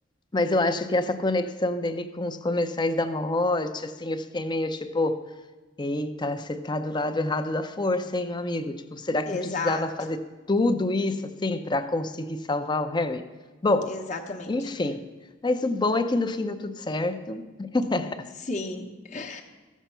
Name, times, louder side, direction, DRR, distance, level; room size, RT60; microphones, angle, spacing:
voice 1, 0.3-5.2 5.8-13.3 13.6-14.0 14.5-15.1 15.4-18.3, left 2 dB, 25° left, 9 dB, 0.6 m, -27 dB
voice 2, 9.3-9.8 13.9-14.5 18.5-19.4, left 3 dB, 40° left, 2 dB, 0.9 m, -32 dB
14.5 x 7.3 x 5.5 m, 1.2 s
head